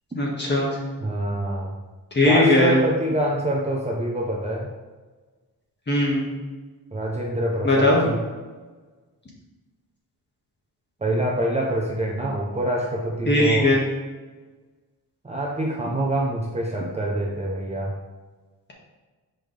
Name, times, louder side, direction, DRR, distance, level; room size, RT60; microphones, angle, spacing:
voice 1, 0.2-0.7 2.1-2.8 5.9-6.3 7.6-8.0 13.3-13.8, left 2 dB, 30° left, -3 dB, 1.8 m, -19 dB
voice 2, 1.0-1.7 2.2-4.7 6.9-8.2 11.0-13.8 15.2-17.9, right 1 dB, 20° right, -3 dB, 0.8 m, -25 dB
6.1 x 5.0 x 3.4 m, 1.3 s
wide cardioid pair, 120°, 36 cm